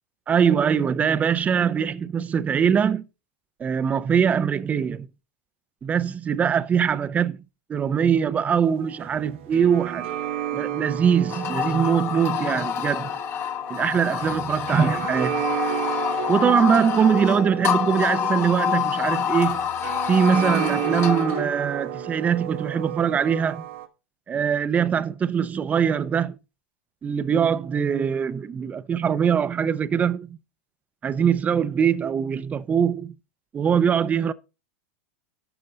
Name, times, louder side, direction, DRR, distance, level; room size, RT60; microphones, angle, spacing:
voice 1, 0.3-3.0 3.6-5.1 5.8-7.4 7.7-10.1 10.5-13.2 13.7-15.4 16.3-19.7 20.1-23.6 24.3-26.4 27.0-30.4 31.0-33.2 33.5-34.3, right 7 dB, 20° right, 0.6 m, -22 dB
sound 1, 8.7-23.9, right 10 dB, 70° right, 1.3 m, -33 dB
sound 2, 11.3-21.4, left 9 dB, 40° left, 1.3 m, -27 dB
12.0 x 6.6 x 3.9 m
hypercardioid pair, 110°, 7 cm